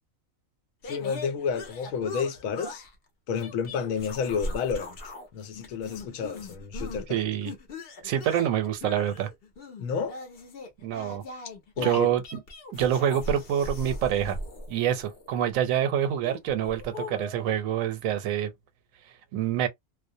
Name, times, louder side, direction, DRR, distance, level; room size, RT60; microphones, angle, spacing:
voice 1, 0.8-2.8 3.3-5.0 5.3-7.2 9.8-10.2 11.8-12.1, left 6 dB, 85° left, 1.0 m, -30 dB
sound 1, 0.8-2.9 3.4-5.3 5.5-7.1 7.4-15.4 16.2-17.6, left 1 dB, 55° left, 0.9 m, -39 dB
voice 2, 7.1-7.5 8.0-9.3 10.8-11.2 11.8-12.4 12.7-14.4 14.7-18.5 19.3-19.7, right 10 dB, 85° right, 1.0 m, -26 dB
2.4 x 2.0 x 2.6 m
omnidirectional pair, 1.4 m